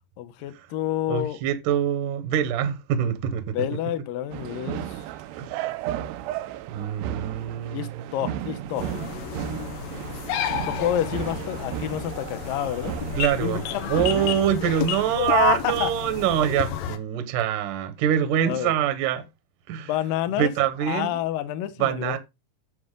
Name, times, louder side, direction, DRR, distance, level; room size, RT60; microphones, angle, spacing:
voice 1, 0.2-1.4 3.5-5.0 7.7-8.9 10.6-13.0 13.4-14.4 15.1-15.9 18.4-18.7 19.9-20.5 20.8-22.2, left 12 dB, 70° left, 2.4 m, -28 dB
voice 2, 1.1-3.5 5.4-5.7 6.7-7.9 8.3-8.5 13.1-13.6 13.9-19.3 19.7-19.9 20.4-21.2 21.8-22.2, right 9 dB, 70° right, 2.1 m, -25 dB
sound 1, 4.3-14.3, right 12 dB, 90° right, 2.8 m, -34 dB
sound 2, 8.8-17.0, left 9 dB, 90° left, 3.2 m, -32 dB
9.6 x 7.1 x 3.8 m
omnidirectional pair, 4.7 m